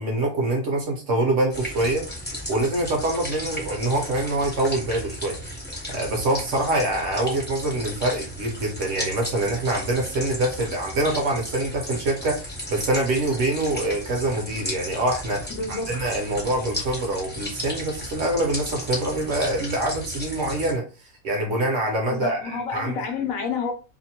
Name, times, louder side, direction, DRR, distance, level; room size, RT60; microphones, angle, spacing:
voice 1, 0.0-2.0 2.5-5.6 5.9-20.8 21.2-22.9, right 1 dB, 60° right, 0.9 m, -25 dB
sound 1, 1.5-20.7, left 1 dB, 10° left, 0.5 m, -35 dB
voice 2, 15.5-15.9 22.1-23.7, left 5 dB, 70° left, 1.0 m, -29 dB
2.7 x 2.1 x 2.8 m
omnidirectional pair, 1.6 m